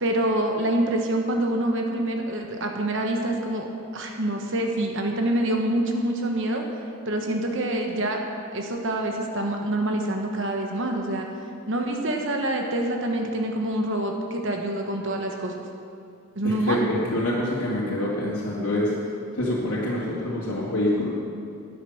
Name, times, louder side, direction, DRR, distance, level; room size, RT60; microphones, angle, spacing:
voice 1, 0.0-3.7 3.9-6.6 7.1-8.2 8.5-11.3 11.7-15.6 16.4-16.9, right 1 dB, 60° right, 2 dB, 1.3 m, -26 dB
voice 2, 16.4-18.9 19.3-21.1, left 1 dB, 85° left, -7 dB, 2.4 m, -26 dB
11.5 x 10.0 x 6.4 m, 2.5 s
head